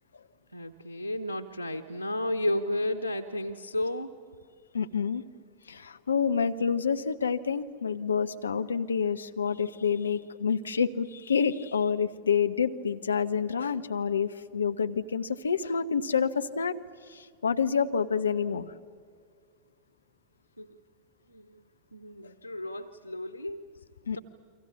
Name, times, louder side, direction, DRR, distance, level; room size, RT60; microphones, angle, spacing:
voice 1, 0.5-4.1 20.6-20.7 21.3-21.6 21.9-23.6 24.1-24.2, left 1 dB, 90° right, 4 dB, 0.9 m, -32 dB
voice 2, 4.7-5.2 5.7-16.8 17.1-18.7 24.1-24.2, left 6 dB, 75° left, 9 dB, 0.9 m, -28 dB
29.5 x 24.0 x 7.1 m, 2.1 s
figure-of-eight pair, 90°, 0 cm